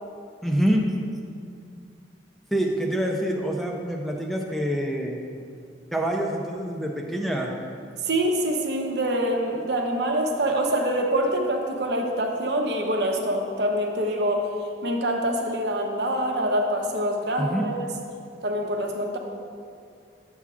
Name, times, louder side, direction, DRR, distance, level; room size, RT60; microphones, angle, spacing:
voice 1, 0.4-0.9 2.5-5.2 5.9-7.6 17.4-17.7, right 1 dB, ahead, 0 dB, 0.5 m, -26 dB
voice 2, 8.0-14.5 14.8-17.9 18.4-19.2, right 1 dB, 65° right, 2 dB, 0.8 m, -25 dB
10.5 x 7.1 x 2.4 m, 2.3 s
head